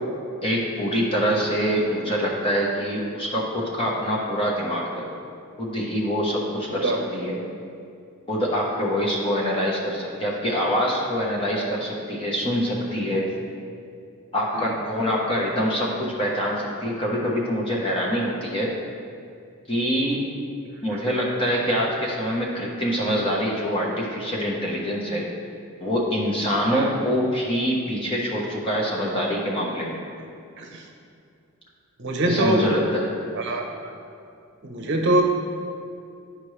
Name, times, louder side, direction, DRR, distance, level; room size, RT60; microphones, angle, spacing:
voice 1, 0.4-5.0 5.6-7.4 8.3-13.3 14.3-18.7 19.7-20.2 20.8-25.3 25.8-30.0 32.2-33.1, equal, 25° left, -4 dB, 1.1 m, -25 dB
voice 2, 32.0-32.6 33.3-33.9 34.6-35.2, right 1 dB, 55° right, 1 dB, 0.8 m, -24 dB
11.0 x 5.1 x 3.3 m, 2.4 s
head